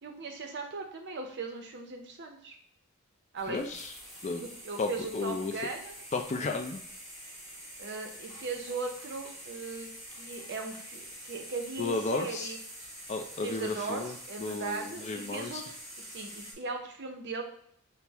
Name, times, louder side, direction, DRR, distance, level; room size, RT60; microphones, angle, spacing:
voice 1, 0.0-2.6 3.3-3.8 4.4-5.9 7.8-9.9 10.1-12.6 13.4-17.4, right 3 dB, 50° right, 3 dB, 0.7 m, -38 dB
sound 1, 3.4-16.5, equal, ahead, 1.3 m, -46 dB
voice 2, 3.5-3.9 4.2-4.4 4.8-5.5 6.1-6.8 11.8-12.5 13.1-14.1 14.4-15.6, left 3 dB, 30° left, 4 dB, 0.4 m, -33 dB
5.8 x 2.1 x 3.4 m, 0.64 s
head